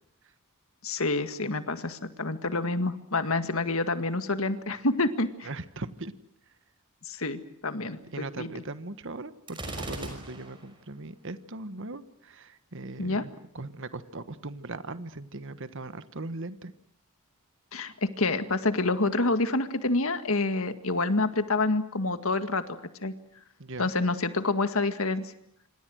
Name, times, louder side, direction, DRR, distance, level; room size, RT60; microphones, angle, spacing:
voice 1, 0.8-5.5 7.1-8.0 8.4-8.5 13.0-13.2 17.7-22.6 23.0-23.1 23.8-25.3, left 2 dB, 65° left, 9 dB, 1.9 m, -27 dB
voice 2, 5.4-6.1 8.1-16.7 23.6-23.9, right 2 dB, 60° right, 12 dB, 1.4 m, -39 dB
Gunshot gunfire, 9.5-10.7, right 2 dB, 20° right, 5.8 m, -38 dB
27.0 x 26.5 x 6.4 m, 0.69 s
head